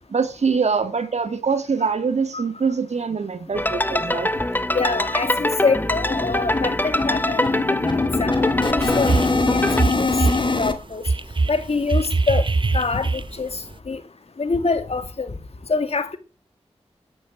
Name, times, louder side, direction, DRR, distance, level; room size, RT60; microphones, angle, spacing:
voice 1, 0.1-4.3, right 5 dB, 80° right, 2.1 m, -23 dB
sound 1, 3.5-3.6 3.9-4.0 4.3-4.5 4.8-10.7, left 3 dB, 45° left, 2.6 m, -24 dB
sound 2, 3.5-9.8, left 1 dB, 15° left, 1.2 m, -24 dB
voice 2, 4.7-7.6 7.9-10.1 10.4-11.0 11.5-14.0 14.4-15.4 15.7-16.2, left 4 dB, 65° left, 2.3 m, -25 dB
sound 3, 8.8-9.4 9.7-10.5 11.1-13.6, right 3 dB, 45° right, 0.9 m, -22 dB
11.0 x 10.0 x 9.0 m
cardioid pair, 50°, 11 cm